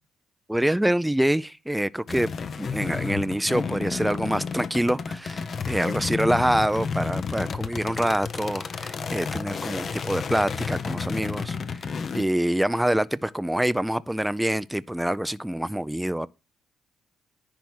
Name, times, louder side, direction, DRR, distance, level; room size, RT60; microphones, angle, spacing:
voice 1, 0.5-2.3 2.6-16.3, right 1 dB, 5° right, 0.4 m, -26 dB
sound 1, 2.1-12.2, left 5 dB, 50° left, 0.8 m, -31 dB
10.5 x 3.5 x 6.1 m
cardioid pair, 90°, 0 cm